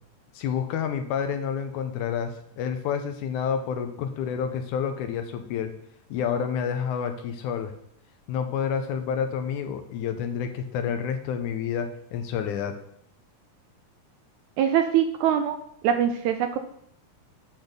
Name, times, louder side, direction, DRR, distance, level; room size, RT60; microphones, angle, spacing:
voice 1, 0.3-5.7 6.1-7.7 8.3-12.8, left 7 dB, 80° left, 8 dB, 2.0 m, -29 dB
voice 2, 14.6-15.6 15.8-16.6, right 9 dB, 80° right, 7 dB, 1.7 m, -23 dB
8.8 x 4.0 x 6.5 m, 0.69 s
omnidirectional pair, 3.8 m